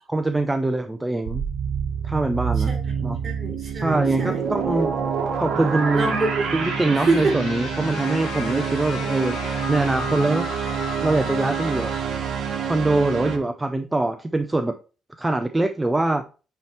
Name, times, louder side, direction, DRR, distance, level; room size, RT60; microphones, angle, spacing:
voice 1, 0.1-1.5 2.0-2.7 3.0-3.2 3.7-4.9 5.4-6.1 6.5-9.4 9.7-10.5 11.0-11.9 12.7-14.8 15.2-16.2, right 2 dB, 15° right, 0.4 m, -23 dB
sound 1, 1.3-13.4, right 7 dB, 70° right, 1.3 m, -27 dB
voice 2, 2.6-4.5 5.9-6.5 6.9-7.4, right 3 dB, 40° right, 3.7 m, -26 dB
sound 2, 6.6-12.0, left 9 dB, 80° left, 0.6 m, -36 dB
8.6 x 3.0 x 4.4 m
cardioid pair, 115°, 0 cm